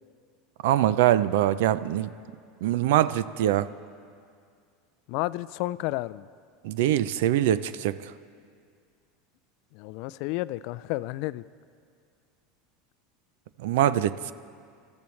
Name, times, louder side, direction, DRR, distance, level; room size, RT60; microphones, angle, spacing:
voice 1, 0.6-2.1 2.6-3.7 6.6-8.1 13.6-14.3, right 12 dB, 75° right, 16 dB, 0.5 m, -23 dB
voice 2, 5.1-6.3 9.7-11.4, left 18 dB, 65° left, 17 dB, 0.3 m, -31 dB
28.0 x 14.0 x 3.2 m, 2.2 s
supercardioid pair, 115°, 0 cm